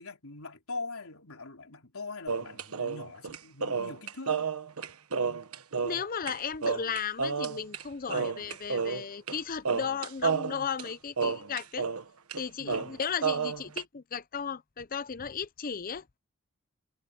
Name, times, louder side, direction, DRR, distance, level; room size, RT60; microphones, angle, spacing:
voice 1, 0.0-4.4 8.1-8.4 12.6-12.9, left 3 dB, 75° left, 3.8 m, -42 dB
sound 1, 2.3-6.3 6.6-7.8 8.1-9.4 9.6-12.0 12.3-12.4 12.7-13.8, right 5 dB, 90° right, 1.3 m, -31 dB
voice 2, 5.8-11.9 12.4-16.1, left 6 dB, 40° left, 0.6 m, -35 dB
head